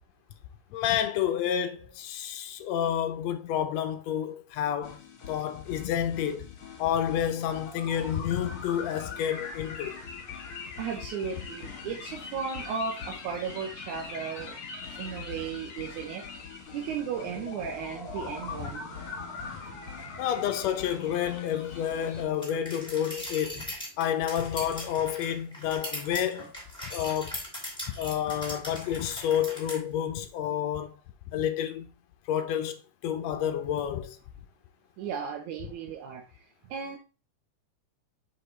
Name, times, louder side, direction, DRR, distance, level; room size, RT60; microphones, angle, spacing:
voice 1, 0.7-6.5 6.8-10.0 18.6-18.7 19.5-19.6 20.2-23.7 24.0-26.6 26.8-27.4 28.0-30.9 31.3-31.9 32.3-34.2, left 10 dB, 70° left, 1.7 m, -30 dB
sound 1, 4.8-22.2, left 5 dB, 50° left, 2.6 m, -42 dB
voice 2, 10.8-14.5 15.0-16.2 16.7-20.2 35.0-37.0, right 6 dB, 80° right, 2.3 m, -36 dB
sound 2, 22.4-29.8, left 1 dB, ahead, 1.9 m, -40 dB
6.5 x 5.0 x 3.2 m
omnidirectional pair, 3.5 m